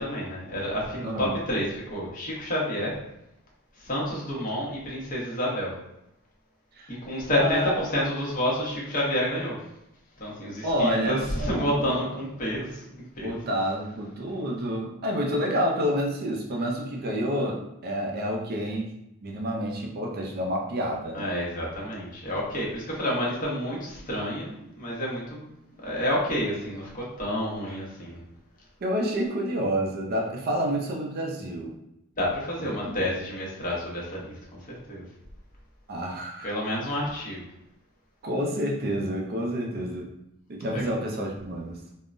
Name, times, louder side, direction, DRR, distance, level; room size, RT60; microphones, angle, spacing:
voice 1, 0.0-3.0 3.8-5.7 6.9-9.6 10.2-13.4 21.1-25.5 25.8-28.2 32.2-34.3 34.7-35.0 36.4-37.4 40.7-40.8, equal, 40° left, -5 dB, 0.9 m, -29 dB
voice 2, 1.0-1.4 6.8-7.0 7.4-7.9 10.6-12.1 13.2-19.0 19.2-21.3 27.7-27.8 28.8-31.7 32.6-33.0 35.9-36.5 36.7-37.0 38.2-40.1 40.5-41.8, equal, 45° right, 0 dB, 0.5 m, -29 dB
3.6 x 2.1 x 2.5 m, 0.87 s
head